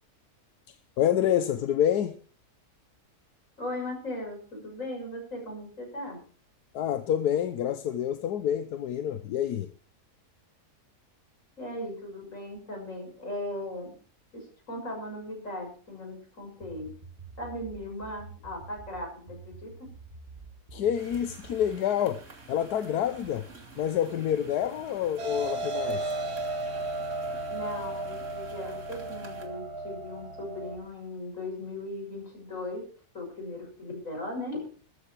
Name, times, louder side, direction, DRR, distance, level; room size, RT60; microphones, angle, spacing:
voice 1, 0.7-2.2 6.7-9.7 20.7-22.2 22.5-23.5 23.8-26.2, left 10 dB, 85° left, 1.3 m, -28 dB
voice 2, 3.6-6.2 11.6-13.9 14.3-16.9 17.4-19.7 27.5-32.8 33.1-34.6, left 1 dB, 55° left, 7.0 m, -38 dB
sound 1, 16.6-21.8, right 4 dB, 35° right, 2.0 m, -48 dB
sound 2, 20.9-29.5, right 3 dB, 50° right, 2.7 m, -50 dB
sound 3, 25.2-30.8, right 2 dB, 80° right, 2.1 m, -34 dB
13.5 x 13.5 x 4.5 m
omnidirectional pair, 1.6 m